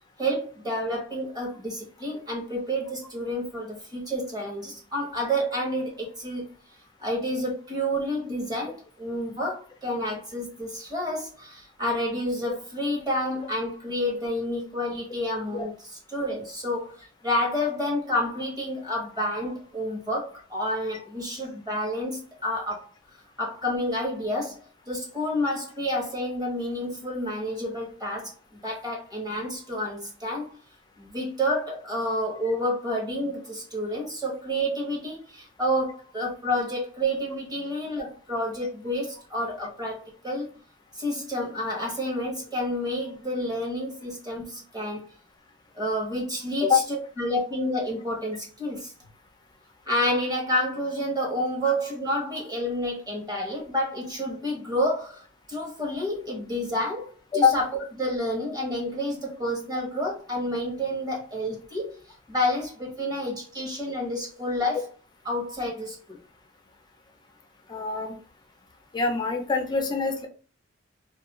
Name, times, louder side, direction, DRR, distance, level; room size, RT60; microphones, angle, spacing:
voice 1, 0.2-6.4 7.0-17.0 17.2-22.9 23.4-28.3 28.6-30.6 31.0-39.9 40.2-40.5 40.9-45.1 45.7-48.9 49.9-57.7 58.0-62.0 62.3-64.9 65.2-66.2, equal, 20° right, -2 dB, 0.9 m, -29 dB
voice 2, 67.7-68.1 68.9-70.3, left 5 dB, 20° left, 4 dB, 0.3 m, -24 dB
2.3 x 2.2 x 2.8 m, 0.38 s
head